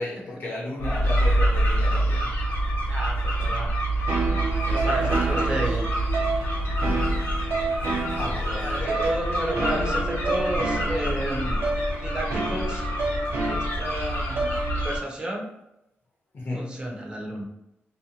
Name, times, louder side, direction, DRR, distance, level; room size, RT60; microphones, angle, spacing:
voice 1, 0.0-2.3 4.8-5.6 6.8-7.1 8.1-9.2 16.3-16.8, left 2 dB, 55° left, -3 dB, 0.6 m, -34 dB
sound 1, 0.8-15.0, right 1 dB, 85° left, 0.8 m, -26 dB
voice 2, 2.9-3.7 4.1-4.3 4.6-5.9 8.6-11.6 12.0-12.8 13.4-15.5 16.5-17.4, right 1 dB, 20° right, -1 dB, 0.5 m, -32 dB
sound 2, 4.1-15.0, right 3 dB, 75° right, 0.6 m, -30 dB
2.6 x 2.1 x 2.7 m, 0.87 s
wide cardioid pair, 180°, 4 cm